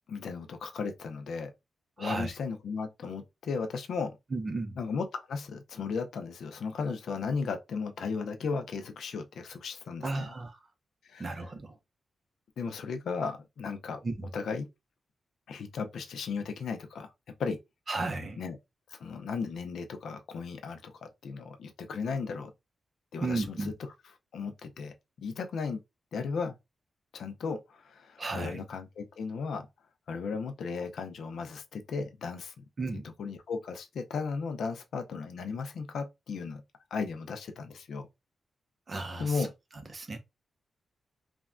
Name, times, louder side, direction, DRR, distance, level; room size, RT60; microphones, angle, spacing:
voice 1, 0.1-1.5 2.0-4.1 4.8-10.3 11.0-11.3 12.6-14.0 14.3-14.7 15.5-17.1 17.4-17.6 18.4-18.6 18.9-22.5 23.1-23.7 24.3-25.8 26.1-26.5 27.1-29.7 30.1-32.5 33.2-36.6 36.9-38.1 39.2-39.5, left 5 dB, 75° left, 0.5 m, -35 dB
voice 2, 2.0-2.3 4.3-4.8 10.0-10.6 11.2-11.8 14.0-14.3 17.9-18.4 23.2-23.7 28.2-28.6 32.8-33.0 38.9-39.5 39.9-40.2, right 3 dB, 30° right, 0.5 m, -34 dB
3.3 x 2.1 x 2.4 m
wide cardioid pair, 180°, 0 cm